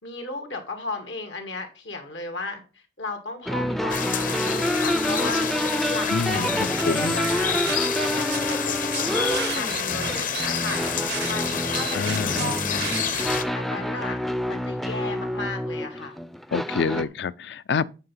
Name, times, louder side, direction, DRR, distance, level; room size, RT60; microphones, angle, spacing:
voice 1, 0.0-6.5 6.8-7.6 8.0-10.8 11.3-12.9 13.5-14.2 14.5-16.2 16.8-17.1, left 3 dB, 85° left, 2.3 m, -35 dB
sound 1, 3.5-17.0, equal, ahead, 0.4 m, -28 dB
sound 2, 3.9-13.4, left 7 dB, 50° left, 0.8 m, -29 dB
voice 2, 6.1-7.1 11.9-12.5 16.5-17.8, left 5 dB, 65° left, 0.4 m, -27 dB
sound 3, 6.4-6.8 7.2-8.5 8.9-13.2, right 10 dB, 65° right, 0.5 m, -34 dB
9.6 x 4.8 x 5.5 m
head